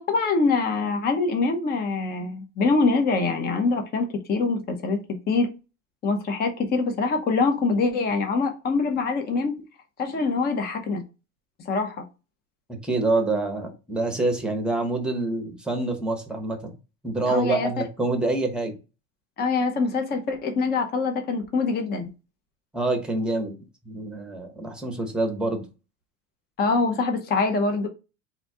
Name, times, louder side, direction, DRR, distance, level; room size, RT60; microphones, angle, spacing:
voice 1, 0.0-5.0 5.3-5.5 6.0-9.6 10.0-11.0 11.7-12.0 17.3-17.7 19.4-22.1 26.6-27.9, left 4 dB, 25° left, 0.8 m, -24 dB
voice 2, 12.8-16.7 17.0-18.8 22.7-23.5 23.8-25.7, right 2 dB, ahead, 0.9 m, -26 dB
3.9 x 2.7 x 4.6 m
cardioid pair, 155°, 36 cm